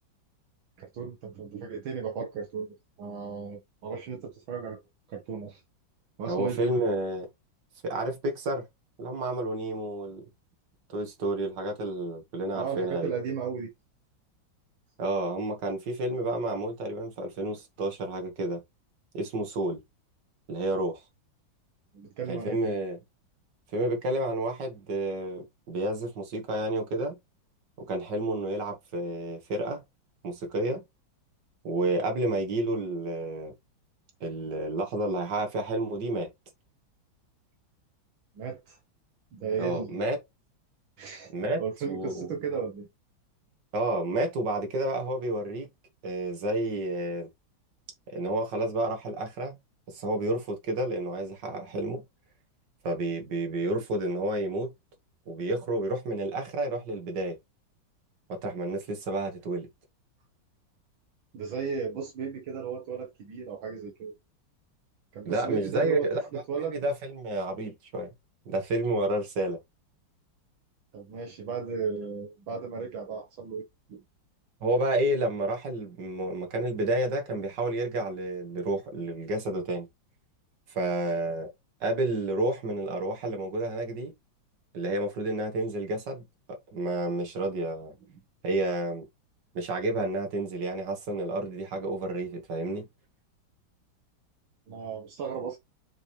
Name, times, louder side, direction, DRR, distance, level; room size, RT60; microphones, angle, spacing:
voice 1, 0.8-4.8 5.1-5.6 6.2-6.8 12.5-13.7 21.9-22.8 38.4-38.8 39.3-40.0 41.0-41.3 41.6-42.9 61.3-64.1 65.1-66.8 70.9-74.0 94.7-95.6, right 6 dB, 75° right, 2.1 m, -35 dB
voice 2, 6.3-7.3 7.8-8.7 9.0-10.2 10.9-13.1 15.0-18.6 19.1-19.8 20.5-21.0 22.3-23.0 23.7-27.2 27.8-29.8 30.2-30.8 31.6-33.5 34.2-36.3 39.6-40.2 41.3-42.3 43.7-45.7 46.0-47.3 48.1-49.6 49.9-52.0 52.8-54.7 55.3-57.4 58.3-59.7 65.3-66.2 66.6-68.1 68.5-69.6 74.6-79.9 80.7-81.5 81.8-84.1 84.7-87.9 88.4-89.1 89.5-92.9, right 1 dB, 60° right, 2.4 m, -30 dB
7.0 x 5.1 x 3.3 m
omnidirectional pair, 2.2 m